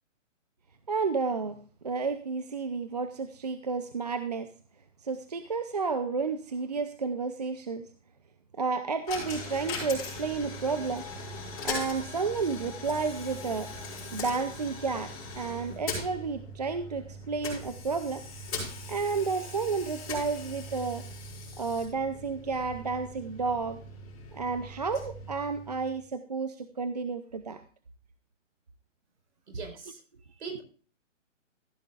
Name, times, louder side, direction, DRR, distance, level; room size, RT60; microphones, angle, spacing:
voice 1, 0.9-1.5 1.8-4.5 5.0-7.9 8.6-11.0 11.6-13.7 14.1-18.2 18.9-21.0 21.6-23.8 24.3-27.6, right 4 dB, 35° right, 10 dB, 0.5 m, -31 dB
Coin (dropping), 9.1-26.0, left 2 dB, 30° left, 6.5 m, -40 dB
voice 2, 29.5-30.0 30.4-30.6, right 5 dB, 60° right, 5 dB, 4.9 m, -40 dB
14.5 x 12.0 x 2.4 m, 0.38 s
hypercardioid pair, 170°, 38 cm